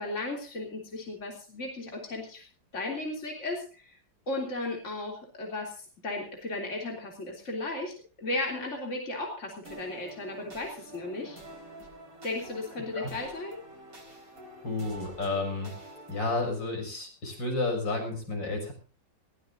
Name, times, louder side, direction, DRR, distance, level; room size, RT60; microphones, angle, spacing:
voice 1, 0.0-2.5 2.7-4.0 4.3-11.4 12.2-13.6, left 2 dB, 40° left, 1 dB, 3.6 m, -35 dB
sound 1, 9.6-16.5, right 1 dB, 50° right, 5.0 m, -47 dB
voice 2, 14.6-15.7 16.1-18.7, left 3 dB, 90° left, 2 dB, 7.0 m, -31 dB
20.5 x 17.5 x 2.7 m, 0.38 s
omnidirectional pair, 1.9 m